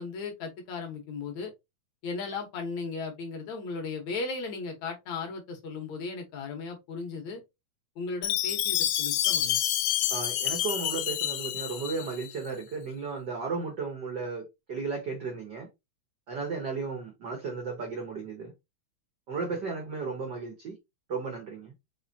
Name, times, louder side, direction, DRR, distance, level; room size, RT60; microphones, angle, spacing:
voice 1, 0.0-1.5 2.0-7.4 8.0-9.6, left 4 dB, 65° left, 2.5 m, -36 dB
Chime, 8.2-12.4, left 11 dB, 90° left, 1.5 m, -28 dB
voice 2, 10.1-15.7 16.3-18.5 19.3-20.8 21.1-21.7, right 4 dB, 90° right, 0.9 m, -34 dB
5.6 x 2.9 x 2.8 m
omnidirectional pair, 3.6 m